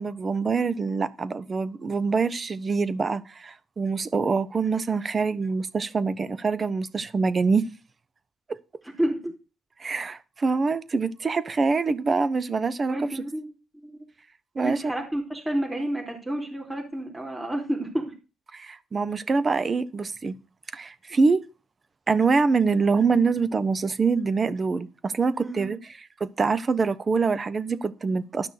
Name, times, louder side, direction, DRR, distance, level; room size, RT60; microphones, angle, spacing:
voice 1, 0.0-7.6 9.8-13.2 14.5-14.9 18.5-20.3 20.7-21.4 22.1-28.5, right 4 dB, 35° right, 1.1 m, -25 dB
voice 2, 8.8-9.3 12.9-13.5 13.7-14.0 14.6-18.1 25.4-25.8, right 1 dB, 15° right, 4.0 m, -30 dB
12.5 x 6.0 x 6.6 m
cardioid pair, 90°, 0 cm